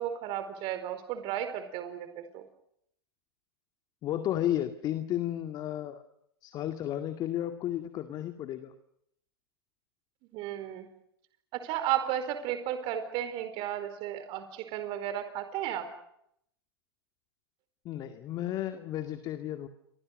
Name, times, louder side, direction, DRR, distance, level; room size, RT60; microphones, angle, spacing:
voice 1, 0.0-2.4 10.3-10.9 11.5-15.9, right 11 dB, 40° right, 9 dB, 4.6 m, -34 dB
voice 2, 4.0-6.0 6.4-8.7 17.8-19.7, left 12 dB, 30° left, 8 dB, 2.1 m, -33 dB
29.5 x 25.5 x 6.6 m, 0.74 s
hypercardioid pair, 125°, 13 cm